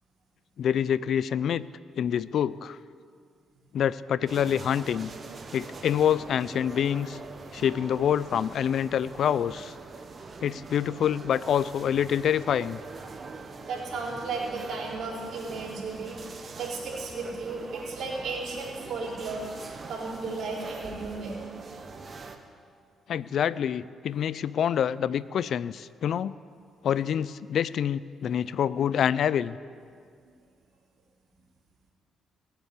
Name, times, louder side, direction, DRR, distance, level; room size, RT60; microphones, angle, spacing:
voice 1, 0.6-1.7 2.0-2.8 3.7-5.1 5.5-7.2 7.5-9.7 10.4-12.8 23.1-26.4 26.8-29.6, left 9 dB, 65° left, 18 dB, 0.4 m, -26 dB
sound 1, 4.3-22.4, right 4 dB, 40° right, 1.4 m, -43 dB
voice 2, 13.7-21.3, right 3 dB, 70° right, -2 dB, 4.0 m, -35 dB
19.5 x 8.1 x 8.4 m, 2.1 s
cardioid pair, 90°, 0 cm